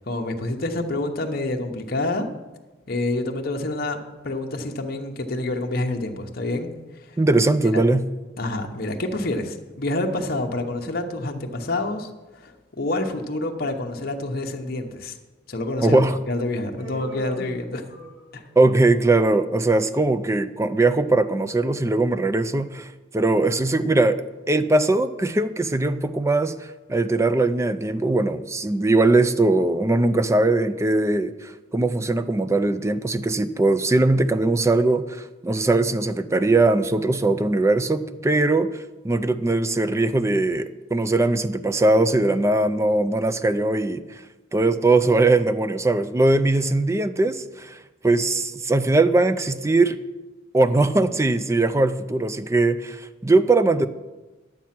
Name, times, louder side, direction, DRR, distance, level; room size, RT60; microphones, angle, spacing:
voice 1, 0.1-2.3 2.9-4.0 4.2-6.7 7.6-7.8 8.4-12.1 12.4-15.1 15.5-17.8 18.3-18.4, left 2 dB, 50° left, 2 dB, 0.9 m, -27 dB
voice 2, 7.2-8.1 15.8-16.2 18.6-44.2 44.5-47.8 48.0-50.0 50.5-53.9, right 2 dB, 15° right, 11 dB, 0.4 m, -20 dB
Human voice, 16.8-18.5, right 2 dB, 65° right, 4.4 m, -39 dB
10.5 x 7.4 x 5.9 m, 1.2 s
head